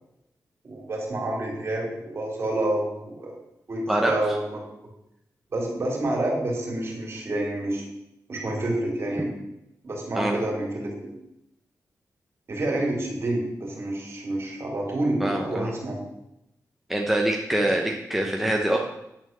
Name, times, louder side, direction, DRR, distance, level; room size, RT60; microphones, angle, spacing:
voice 1, 0.6-3.4 3.7-4.6 5.5-7.9 8.3-9.3 9.8-10.9 12.5-15.9, right 1 dB, 45° right, -2 dB, 3.4 m, -28 dB
voice 2, 15.2-15.7 16.9-18.9, right 1 dB, 5° right, 0 dB, 1.0 m, -24 dB
9.6 x 4.4 x 7.5 m, 0.85 s
wide cardioid pair, 110°, 6 cm